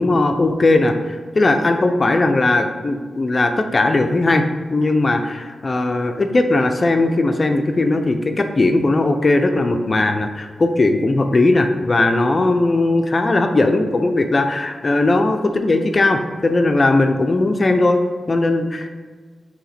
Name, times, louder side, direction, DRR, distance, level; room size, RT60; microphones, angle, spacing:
voice 1, 0.0-4.4 4.7-18.0 18.3-18.9, left 2 dB, 40° left, 6 dB, 0.4 m, -18 dB
4.0 x 2.8 x 4.1 m, 1.5 s
cardioid pair, 65°, 0 cm